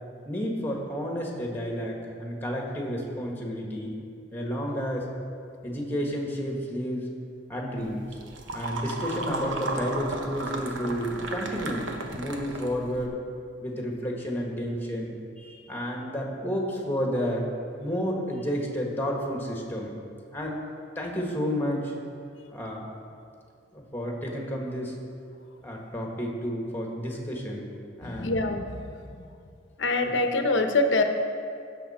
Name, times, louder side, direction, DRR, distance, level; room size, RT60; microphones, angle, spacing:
voice 1, 0.3-4.0 4.3-5.1 5.6-7.1 7.5-8.1 8.5-13.2 13.6-17.5 17.8-20.0 20.3-20.6 21.0-21.9 22.5-22.8 23.7-25.0 25.6-27.7 28.0-28.3, equal, 10° left, 0 dB, 1.6 m, -31 dB
sound 1, 7.8-13.1, right 2 dB, 90° right, 1.1 m, -34 dB
voice 2, 28.0-28.6 29.8-31.0, left 2 dB, 80° left, 6 dB, 0.9 m, -24 dB
16.5 x 6.8 x 4.3 m, 2.4 s
head